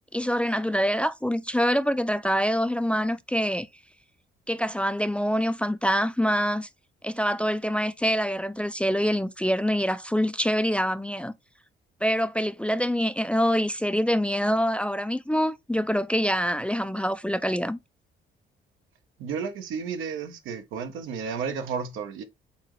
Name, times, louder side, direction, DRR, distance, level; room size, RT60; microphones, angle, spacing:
voice 1, 0.1-3.7 4.5-6.7 7.0-11.3 12.0-17.8, equal, 5° left, 0.3 m, -25 dB
voice 2, 19.2-22.2, right 6 dB, 90° right, 0.9 m, -32 dB
4.3 x 3.7 x 3.1 m
cardioid pair, 90°, 20 cm